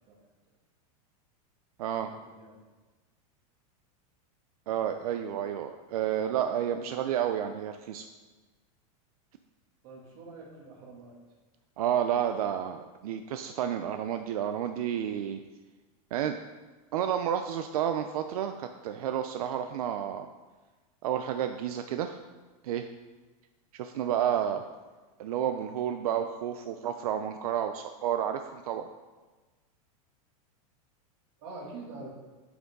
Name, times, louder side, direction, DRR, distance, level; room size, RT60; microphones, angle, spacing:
voice 1, 1.8-2.6 9.8-11.2 31.4-32.1, right 3 dB, 45° right, -3 dB, 2.5 m, -45 dB
voice 2, 4.7-8.1 11.8-15.4 16.1-16.4 16.9-20.3 21.0-22.2 22.6-22.9 23.7-24.6 25.2-28.9, right 9 dB, 85° right, 7 dB, 0.6 m, -30 dB
9.3 x 6.0 x 3.9 m, 1.2 s
supercardioid pair, 165°, 19 cm